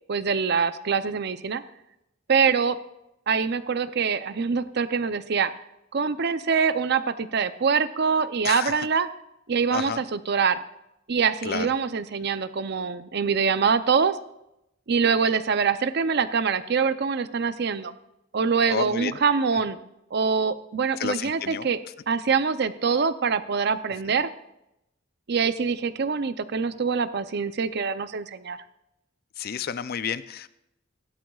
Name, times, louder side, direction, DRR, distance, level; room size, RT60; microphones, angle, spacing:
voice 1, 0.1-1.6 2.3-2.8 3.3-5.5 5.9-9.1 9.5-10.6 11.1-14.2 14.9-17.9 18.3-19.8 20.1-21.8 22.1-24.3 25.3-28.6, right 5 dB, 55° right, 12 dB, 0.6 m, -24 dB
voice 2, 8.4-8.8 9.7-10.0 11.4-11.7 18.7-19.2 21.0-21.7 29.4-30.5, left 7 dB, 50° left, 14 dB, 0.4 m, -30 dB
16.5 x 12.0 x 2.4 m, 0.85 s
head